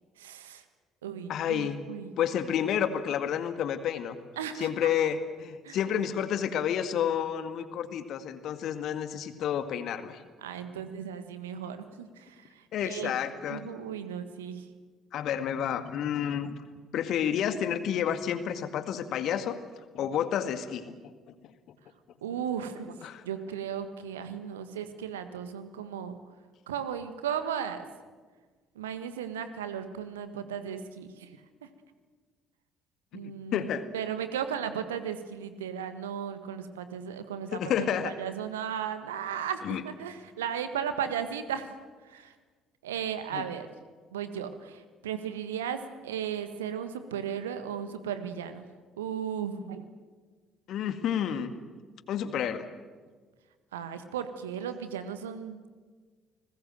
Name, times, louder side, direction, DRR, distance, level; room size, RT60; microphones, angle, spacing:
voice 1, 0.2-0.6 1.0-2.2 4.4-4.9 5.6-5.8 10.4-13.1 13.5-14.7 22.2-26.2 26.7-27.9 28.7-31.7 33.1-33.7 33.9-41.7 42.0-42.3 42.8-43.7 44.1-48.7 49.0-49.9 53.7-55.7, right 8 dB, 75° right, 10 dB, 1.6 m, -36 dB
voice 2, 1.3-1.8 2.2-4.2 4.6-10.2 12.7-13.6 15.1-16.5 16.9-19.6 19.9-20.9 23.0-23.2 33.1-33.8 37.5-38.1 39.6-39.8 43.3-43.4 50.7-51.5 52.1-52.7, left 9 dB, 55° left, 10 dB, 1.9 m, -30 dB
30.0 x 20.5 x 7.8 m, 1.4 s
figure-of-eight pair, 50°, 0 cm